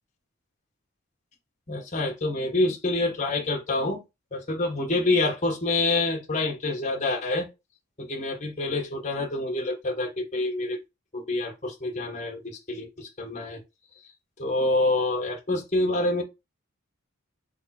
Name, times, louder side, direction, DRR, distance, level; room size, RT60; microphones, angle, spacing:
voice 1, 1.7-4.0 4.3-7.5 8.0-10.8 11.1-13.6 14.4-16.2, left 2 dB, 35° left, 1.3 m, -27 dB
3.7 x 3.4 x 4.2 m
head